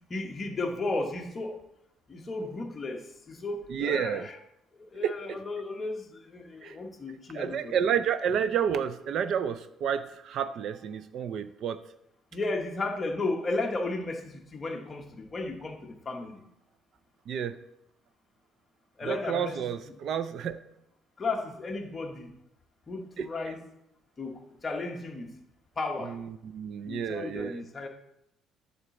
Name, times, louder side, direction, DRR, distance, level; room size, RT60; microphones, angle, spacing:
voice 1, 0.1-1.6 2.1-4.4 4.9-7.7 12.3-16.4 19.0-19.9 21.2-22.3 22.9-23.6 24.2-25.3 25.8-26.2 26.9-27.9, left 2 dB, 20° left, 2 dB, 1.0 m, -34 dB
voice 2, 3.7-4.3 5.0-5.2 6.6-6.8 7.3-11.8 17.3-17.6 19.1-20.6 23.2-23.3 26.0-27.6, right 8 dB, 45° right, 12 dB, 0.4 m, -30 dB
11.0 x 4.0 x 6.9 m, 0.81 s
cardioid pair, 175°, 0 cm